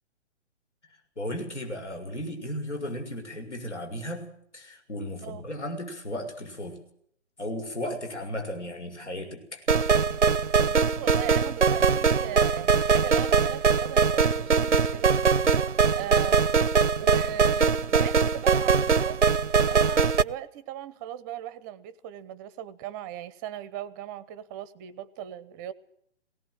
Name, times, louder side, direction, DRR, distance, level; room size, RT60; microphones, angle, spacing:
voice 1, 1.2-4.3 4.5-6.8 7.4-9.6, left 1 dB, 80° left, 6.7 m, -35 dB
sound 1, 9.7-20.2, right 5 dB, 85° right, 0.8 m, -22 dB
voice 2, 10.6-15.2 15.9-16.5 17.0-25.7, right 11 dB, 15° right, 0.7 m, -38 dB
20.0 x 18.0 x 7.8 m
figure-of-eight pair, 135°, 35 cm